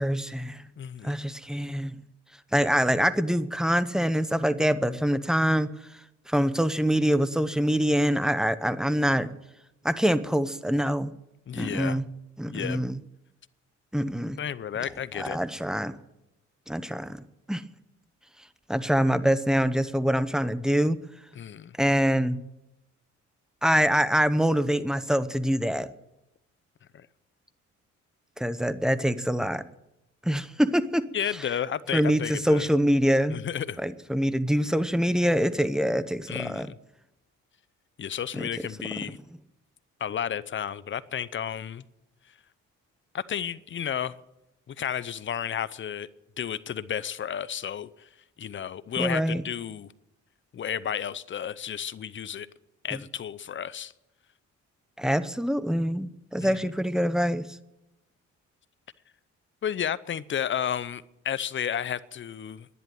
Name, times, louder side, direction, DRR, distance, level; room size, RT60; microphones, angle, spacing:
voice 1, 0.0-0.6 1.0-1.9 2.5-5.7 6.3-9.3 9.8-11.1 11.5-12.1 12.4-13.0 13.9-14.4 15.2-15.9 16.7-17.6 18.7-21.0 21.8-22.4 23.6-25.9 28.4-29.6 30.2-31.0 31.9-33.4 33.8-36.7 38.4-38.5 49.0-49.4 52.9-53.0 55.0-57.5, equal, ahead, 14 dB, 0.8 m, -25 dB
voice 2, 0.8-1.1 11.5-12.0 12.5-12.8 14.4-15.4 21.4-21.7 26.9-27.1 31.1-32.7 33.3-33.8 36.3-36.8 38.0-39.2 40.0-41.8 43.1-44.1 44.7-46.1 46.4-48.1 48.4-49.9 50.5-52.5 52.8-53.9 56.4-56.6 59.6-62.7, left 9 dB, 40° left, 17 dB, 0.7 m, -32 dB
11.0 x 10.5 x 9.3 m, 0.90 s
cardioid pair, 90°, 30 cm